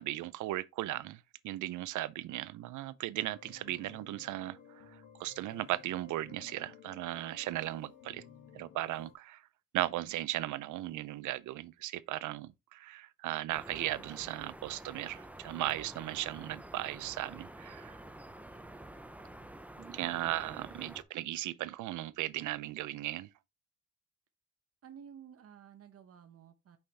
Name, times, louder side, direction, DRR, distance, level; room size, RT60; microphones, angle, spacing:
voice 1, 0.0-8.2 8.5-9.4 9.7-18.0 19.9-23.3, right 15 dB, 80° right, 0.6 m, -37 dB
sound 1, 3.2-9.1, left 8 dB, 80° left, 1.9 m, -56 dB
sound 2, 13.5-21.0, right 1 dB, 5° right, 0.7 m, -49 dB
voice 2, 19.7-20.8 24.8-26.8, right 8 dB, 50° right, 0.9 m, -54 dB
5.8 x 5.4 x 3.4 m
cardioid pair, 90°, 30 cm